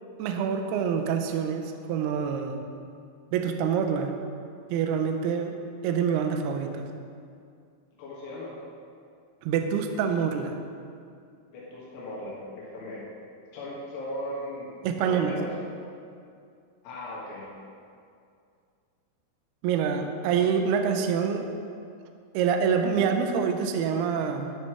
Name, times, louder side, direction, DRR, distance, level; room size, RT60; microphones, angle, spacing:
voice 1, 0.2-2.6 3.3-4.1 4.7-5.5 5.8-6.9 9.4-10.6 14.8-15.3 19.6-21.5 22.3-24.6, right 7 dB, 85° right, 5 dB, 2.3 m, -26 dB
voice 2, 8.0-8.5 11.5-13.0 13.5-15.5 16.8-17.5, left 1 dB, 85° left, -7 dB, 4.6 m, -37 dB
12.5 x 11.0 x 3.4 m, 2.3 s
omnidirectional pair, 5.5 m